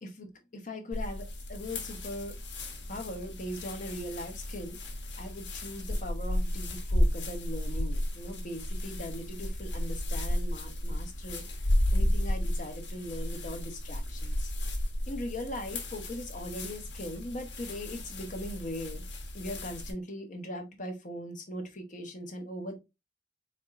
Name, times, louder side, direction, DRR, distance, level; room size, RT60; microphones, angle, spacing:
voice 1, 0.0-2.4 2.9-4.8 5.2-11.4 11.9-14.5 15.1-19.0 19.3-22.8, left 1 dB, 45° left, 1.1 m, -40 dB
sound 1, 0.9-19.9, left 1 dB, 70° left, 1.3 m, -33 dB
4.4 x 3.5 x 2.5 m
head